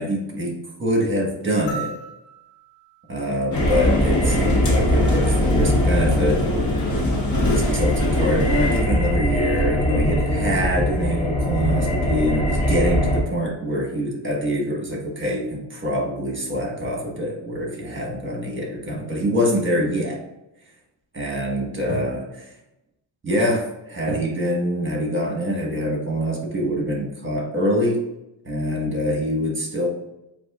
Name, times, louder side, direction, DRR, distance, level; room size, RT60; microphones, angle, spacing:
voice 1, 0.0-1.9 3.1-6.4 7.4-20.2 21.1-22.5 23.2-28.0 28.4-29.9, equal, 25° right, -1 dB, 1.4 m, -25 dB
sound 1, 1.7-4.2 5.8-5.9, right 4 dB, 60° left, 1.6 m, -39 dB
sound 2, 3.5-8.8, left 1 dB, 40° left, 1.4 m, -24 dB
sound 3, 3.5-13.2, equal, 15° left, 1.0 m, -22 dB
7.6 x 2.7 x 2.4 m, 0.91 s
cardioid pair, 90°, 47 cm